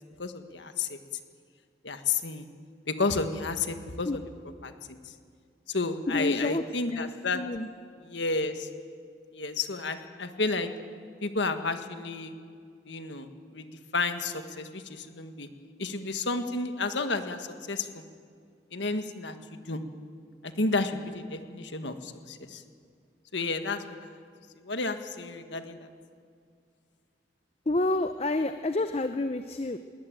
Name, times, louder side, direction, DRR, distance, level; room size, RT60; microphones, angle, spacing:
voice 1, 0.2-1.0 1.8-2.5 2.9-4.2 4.6-4.7 5.7-7.4 8.0-8.7 9.3-10.7 11.2-12.3 12.8-13.7 13.9-15.5 15.8-18.0 18.7-19.8 20.4-22.6 23.3-24.1 24.6-25.8, left 3 dB, 75° left, 8 dB, 1.6 m, -31 dB
voice 2, 6.1-6.6 6.9-7.7 27.7-29.8, left 2 dB, 30° left, 9 dB, 0.6 m, -29 dB
21.5 x 18.5 x 9.0 m, 2.2 s
head